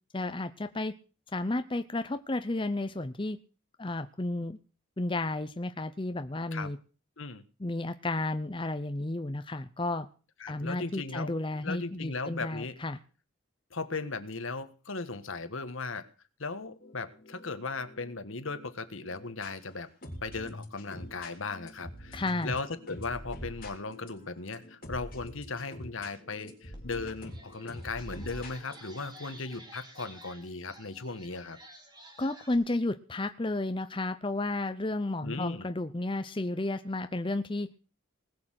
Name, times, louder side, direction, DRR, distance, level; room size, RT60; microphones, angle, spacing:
voice 1, 0.1-0.9 1.3-3.4 3.8-4.6 5.0-6.8 7.6-10.1 10.5-13.0 22.1-22.6 32.2-37.7, left 2 dB, 25° left, 9 dB, 0.6 m, -32 dB
voice 2, 10.4-11.3 11.6-12.8 13.7-16.1 16.4-19.9 20.2-31.6 35.2-35.7, left 3 dB, 70° left, 10 dB, 1.5 m, -37 dB
sound 1, 16.8-19.5 20.0-28.8, left 1 dB, 40° left, 3.8 m, -45 dB
sound 2, 26.7-26.8 27.2-32.5, right 1 dB, 20° right, 3.9 m, -52 dB
20.0 x 6.7 x 7.7 m, 0.37 s
head